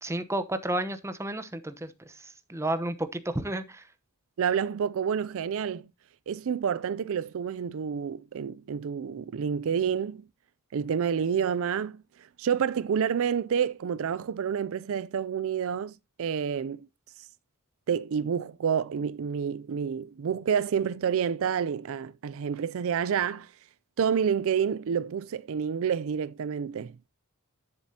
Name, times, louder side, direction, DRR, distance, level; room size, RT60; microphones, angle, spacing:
voice 1, 0.0-3.9, right 1 dB, 15° right, 0.9 m, -32 dB
voice 2, 4.4-5.9 6.3-10.2 10.7-12.0 12.4-16.8 17.9-23.5 24.0-27.1, right 7 dB, 65° right, 0.4 m, -29 dB
10.5 x 7.4 x 2.8 m
head